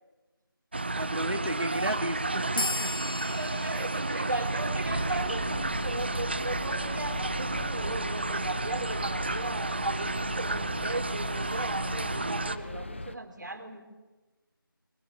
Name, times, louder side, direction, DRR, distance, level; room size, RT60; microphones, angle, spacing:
sound 1, 0.7-12.6, right 2 dB, 30° right, 0.7 m, -32 dB
voice 1, 1.0-3.4, right 1 dB, 90° right, 3 dB, 2.5 m, -34 dB
sound 2, 2.6-5.6, left 2 dB, 70° left, 0.7 m, -37 dB
voice 2, 3.0-13.8, right 2 dB, 55° right, 5 dB, 4.2 m, -37 dB
sound 3, 4.8-13.2, left 2 dB, 30° left, 0.9 m, -40 dB
23.0 x 18.5 x 8.5 m, 1.2 s
figure-of-eight pair, 170°, 12 cm